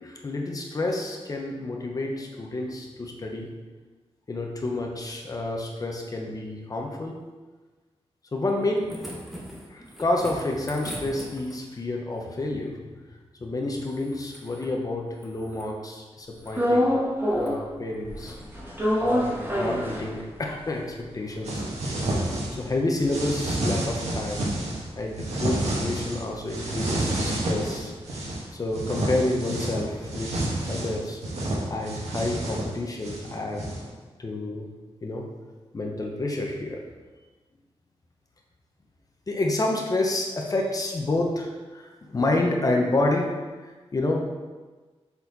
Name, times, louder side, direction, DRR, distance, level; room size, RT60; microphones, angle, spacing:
voice 1, 0.0-3.5 4.3-7.2 8.3-8.9 9.7-12.9 13.4-16.9 17.2-18.4 19.0-21.7 22.0-24.5 25.0-27.9 28.6-30.3 30.7-31.2 31.7-33.6 34.2-34.7 35.0-35.2 35.7-36.8 39.3-43.3 43.9-44.3, left 2 dB, 35° left, 1 dB, 0.9 m, -29 dB
sound 1, 8.5-11.8 13.7-14.8 15.1-15.7 16.2-16.7 17.3-17.6 18.1-18.4 19.8-19.9, equal, ahead, 1.1 m, -42 dB
sound 2, 16.5-17.7 18.0-20.6 21.0-21.1 21.3-25.8 26.1-30.2, equal, 20° right, 1.4 m, -29 dB
sound 3, 21.4-22.7 23.0-24.8 25.2-26.2 26.5-28.4 28.7-33.9, right 1 dB, 85° right, 1.5 m, -29 dB
7.1 x 4.2 x 4.1 m, 1.3 s
wide cardioid pair, 155°, 11 cm